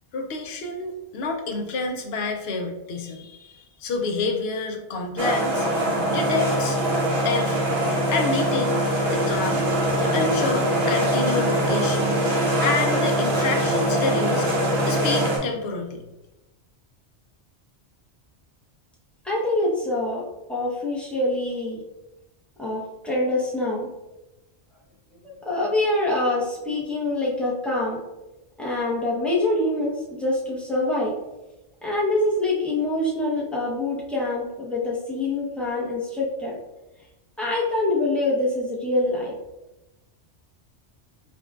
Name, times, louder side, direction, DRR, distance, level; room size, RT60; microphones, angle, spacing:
voice 1, 0.1-5.7 6.1-6.8 7.2-7.7 8.1-8.8 9.1-9.7 10.0-12.2 12.6-14.5 14.8-16.0, left 3 dB, 65° left, 4 dB, 0.8 m, -28 dB
sound 1, 5.2-15.4, right 1 dB, 65° right, 1.1 m, -23 dB
voice 2, 19.2-21.8 22.6-23.9 25.2-28.0 28.6-31.1 31.8-36.5 37.4-39.3, left 2 dB, ahead, -5 dB, 0.6 m, -25 dB
5.0 x 2.3 x 2.3 m, 1.0 s
omnidirectional pair, 1.2 m